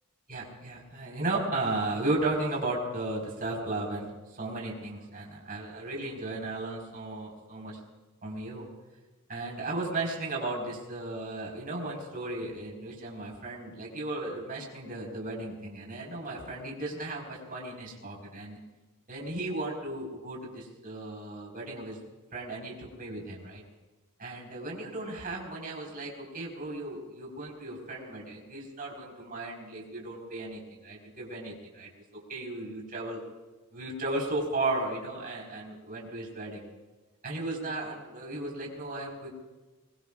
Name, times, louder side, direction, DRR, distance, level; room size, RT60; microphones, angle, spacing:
voice 1, 0.3-7.8 8.2-8.7 9.3-18.6 19.1-22.0 22.3-23.6 24.2-31.9 32.3-33.2 33.7-36.7 37.2-39.3, right 2 dB, 40° right, -2 dB, 5.0 m, -35 dB
24.0 x 22.5 x 2.5 m, 1.2 s
head